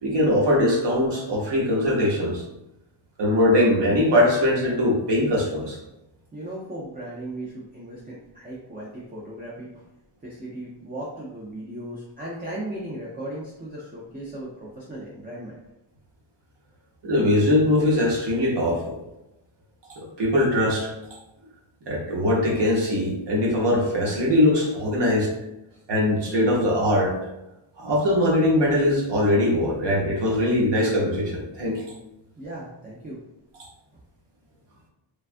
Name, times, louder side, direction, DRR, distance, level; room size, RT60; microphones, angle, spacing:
voice 1, 0.0-2.4 3.2-5.8 17.0-18.9 19.9-20.9 21.9-25.3 25.9-27.2 27.8-31.8, left 1 dB, 60° right, -3 dB, 0.9 m, -21 dB
voice 2, 6.3-9.8 10.2-15.6 32.4-33.2, right 1 dB, 20° right, -5 dB, 0.3 m, -37 dB
3.3 x 2.3 x 2.5 m, 0.93 s
wide cardioid pair, 170°, 49 cm